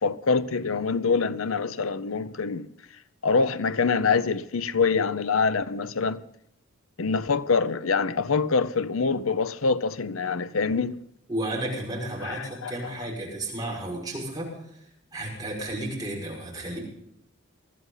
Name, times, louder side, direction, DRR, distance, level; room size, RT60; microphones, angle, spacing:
voice 1, 0.0-2.7 3.2-6.2 7.0-11.0 12.2-12.9, left 4 dB, 85° left, 0.7 m, -25 dB
voice 2, 11.3-14.5 15.1-16.8, right 1 dB, 20° right, 5.6 m, -32 dB
21.0 x 14.0 x 4.0 m
head